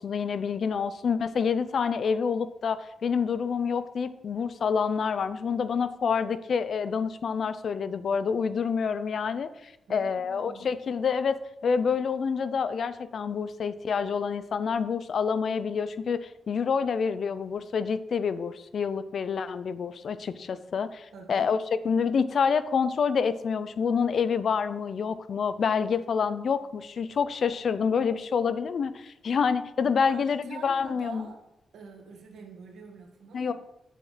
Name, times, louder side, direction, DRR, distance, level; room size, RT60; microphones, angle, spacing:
voice 1, 0.0-11.4 11.6-21.6 21.8-31.3 33.3-33.5, left 6 dB, 60° left, 14 dB, 0.5 m, -27 dB
voice 2, 9.9-10.7 21.1-21.5 30.0-31.4 31.7-33.5, right 4 dB, 85° right, 1 dB, 1.6 m, -46 dB
8.6 x 7.6 x 3.2 m, 0.86 s
cardioid pair, 105°, 0 cm